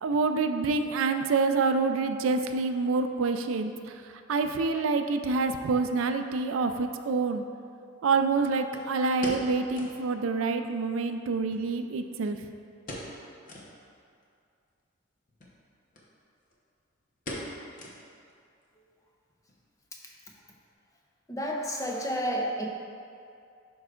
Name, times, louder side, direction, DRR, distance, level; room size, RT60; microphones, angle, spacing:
voice 1, 0.0-7.4 8.0-12.4, right 4 dB, 85° right, 7 dB, 0.4 m, -27 dB
sound 1, 6.6-6.7 8.7-10.1 10.4-10.5 10.8-10.9 11.5-12.4 12.8-13.2 13.4-13.7 14.2-14.3 15.3-15.6 15.9-16.1 16.4-16.7 17.3-18.3 18.6-18.7 19.3-19.6 19.9-20.0, left 1 dB, 40° left, 0.9 m, -41 dB
voice 2, 21.3-22.7, equal, 15° left, -1 dB, 0.6 m, -30 dB
11.0 x 4.7 x 2.4 m, 2.4 s
head